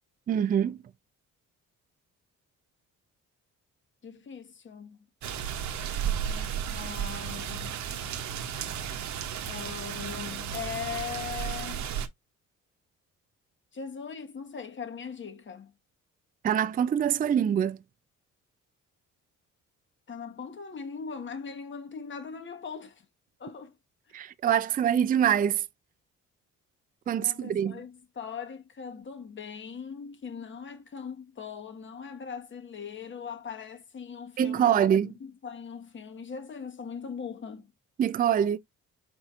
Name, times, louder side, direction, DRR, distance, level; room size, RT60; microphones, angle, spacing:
voice 1, 0.3-0.8 16.4-17.8 24.1-25.6 27.1-27.8 34.4-35.1 38.0-38.6, right 9 dB, 30° right, 0.4 m, -24 dB
voice 2, 4.0-5.1 6.0-7.8 9.5-11.8 13.7-15.7 20.1-23.0 23.4-23.7 24.1-24.2 27.1-37.7, left 6 dB, 40° left, 1.1 m, -40 dB
sound 1, 5.2-12.1, right 8 dB, 65° right, 0.8 m, -34 dB
4.5 x 4.1 x 2.4 m
cardioid pair, 90°, 30 cm